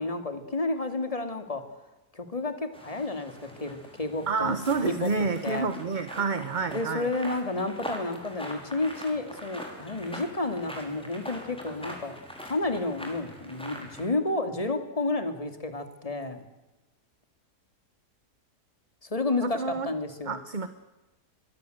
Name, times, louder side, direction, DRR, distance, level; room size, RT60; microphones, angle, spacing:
voice 1, 0.0-1.6 2.1-4.6 4.8-5.1 5.4-5.7 6.7-12.2 12.4-16.4 19.0-20.4, left 2 dB, 20° left, 8 dB, 2.6 m, -31 dB
sound 1, 2.7-14.1, equal, 5° left, 5.3 m, -43 dB
voice 2, 4.3-7.1 19.4-19.9 20.3-20.7, right 4 dB, 30° right, 11 dB, 1.1 m, -29 dB
24.5 x 22.5 x 8.0 m, 1.1 s
omnidirectional pair, 1.7 m